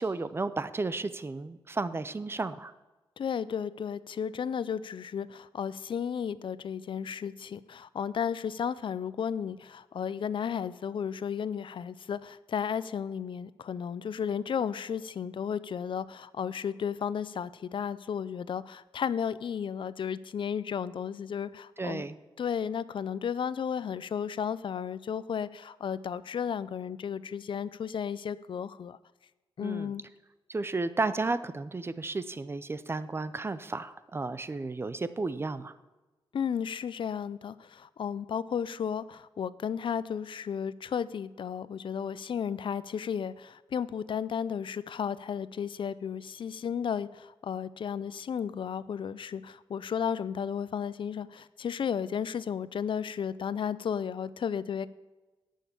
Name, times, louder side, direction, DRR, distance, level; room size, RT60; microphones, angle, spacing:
voice 1, 0.0-2.7 21.8-22.2 29.6-29.9 30.5-35.7, right 3 dB, 25° right, 14 dB, 0.5 m, -33 dB
voice 2, 3.2-22.0 22.4-29.0 29.6-30.0 36.3-54.9, left 7 dB, 65° left, 17 dB, 0.4 m, -33 dB
17.0 x 6.5 x 7.0 m, 1.1 s
wide cardioid pair, 145°, 9 cm